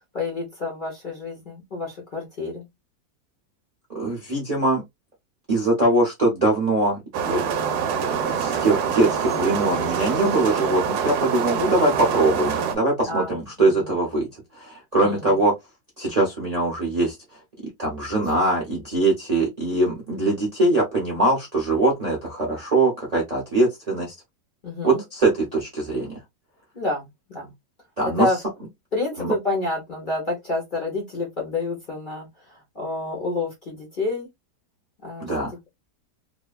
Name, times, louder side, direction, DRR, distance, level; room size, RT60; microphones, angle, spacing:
voice 1, 0.1-2.7 13.1-13.3 13.6-13.9 15.0-15.4 18.2-18.3 24.6-25.0 26.7-27.5 28.0-28.4 28.9-34.3 35.0-35.3, left 3 dB, 40° left, 0.9 m, -29 dB
voice 2, 3.9-4.8 5.5-7.0 7.2-7.4 8.0-14.3 14.5-15.5 16.0-17.2 17.8-24.1 24.8-26.2 28.0-28.3 29.2-29.3 35.2-35.5, right 2 dB, 35° right, 0.7 m, -22 dB
sound 1, 7.1-12.7, right 7 dB, 75° right, 1.1 m, -25 dB
3.2 x 2.0 x 2.3 m
omnidirectional pair, 1.8 m